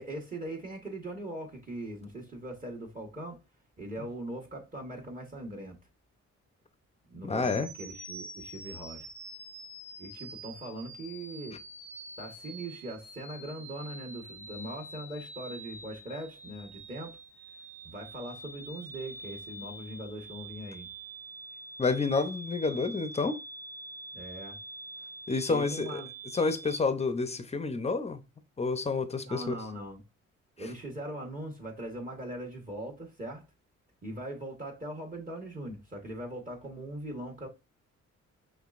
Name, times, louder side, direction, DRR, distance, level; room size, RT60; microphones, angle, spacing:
voice 1, 0.0-3.4 3.8-5.8 7.1-9.1 10.0-11.6 12.2-17.2 17.8-20.9 24.1-24.6 25.5-26.1 29.2-30.0 30.6-33.4 34.0-37.5, right 1 dB, 25° right, 1.4 m, -40 dB
voice 2, 7.2-7.7 21.8-23.4 25.3-26.0 26.3-28.2 28.6-29.5, left 4 dB, 20° left, 0.6 m, -29 dB
sound 1, 7.4-26.8, right 2 dB, 10° right, 0.9 m, -46 dB
5.7 x 3.2 x 2.5 m
cardioid pair, 90°, 30 cm